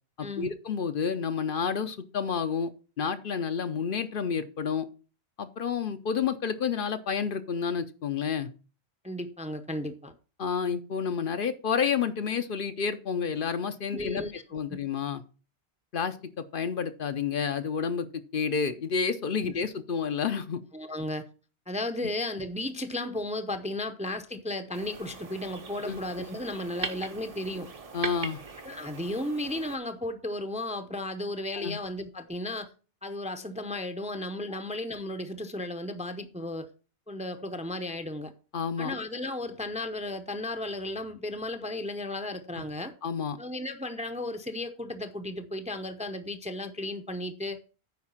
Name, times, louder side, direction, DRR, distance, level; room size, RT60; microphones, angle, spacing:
voice 1, 0.2-2.7 3.0-4.9 5.4-8.5 10.4-14.3 14.5-15.2 15.9-18.1 18.3-20.6 25.8-26.0 27.9-28.4 31.6-31.8 34.5-34.6 38.5-39.0 42.6-42.7 43.0-43.4, left 6 dB, 60° left, 0.8 m, -30 dB
voice 2, 9.0-10.1 13.9-14.4 14.7-14.8 19.4-19.5 20.7-21.3 21.7-27.7 28.6-32.7 33.0-36.7 37.1-38.3 38.8-42.9 43.4-47.6, left 1 dB, 10° right, 0.6 m, -34 dB
sound 1, 24.7-29.8, right 4 dB, 40° right, 0.8 m, -40 dB
9.4 x 4.8 x 5.6 m
omnidirectional pair, 1.1 m